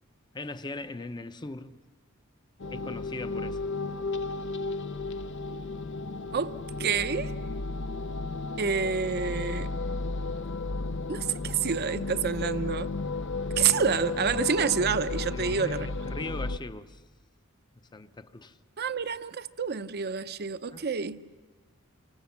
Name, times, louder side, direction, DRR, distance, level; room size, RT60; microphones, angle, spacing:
voice 1, 0.3-1.8 2.7-3.6 15.3-17.0 17.7-18.6 20.7-20.9, left 2 dB, 20° left, 0.7 m, -40 dB
sound 1, 2.6-16.6, left 3 dB, 60° left, 0.7 m, -33 dB
voice 2, 6.3-7.3 8.6-9.7 11.1-12.9 13.5-15.9 18.8-21.2, right 6 dB, 50° right, 0.7 m, -28 dB
28.0 x 25.0 x 7.2 m
head